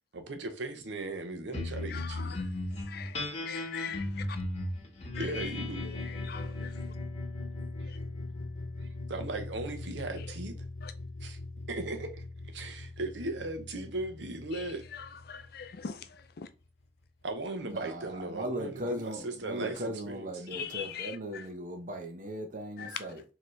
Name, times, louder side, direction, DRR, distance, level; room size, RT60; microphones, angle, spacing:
voice 1, 0.1-2.4 5.2-5.8 7.8-7.9 9.1-10.5 11.2-11.4 11.7-12.2 12.5-14.8 17.2-20.3, right 2 dB, 90° right, 0.8 m, -37 dB
sound 1, 1.5-16.2, left 2 dB, 40° left, 1.3 m, -38 dB
voice 2, 1.9-2.4 2.9-3.1 3.5-4.1 5.8-6.7 10.8-10.9 14.9-16.0 16.4-16.5 20.5-21.1 22.8-23.0, left 7 dB, 60° left, 0.5 m, -40 dB
voice 3, 17.6-23.2, equal, 50° right, 0.9 m, -38 dB
4.4 x 2.9 x 3.2 m
head